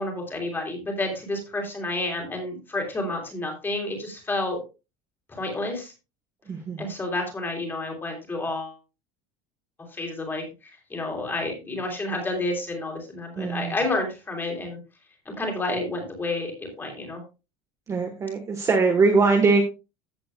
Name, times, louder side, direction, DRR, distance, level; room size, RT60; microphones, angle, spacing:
voice 1, 0.0-4.6 5.3-5.9 6.8-8.8 9.9-10.4 10.9-14.8 15.2-17.2, left 2 dB, 15° left, 2 dB, 3.1 m, -30 dB
voice 2, 6.5-6.9 13.4-13.8 17.9-19.6, right 4 dB, 20° right, 3 dB, 1.2 m, -21 dB
15.0 x 7.8 x 2.3 m, 0.29 s
cardioid pair, 170°, 16 cm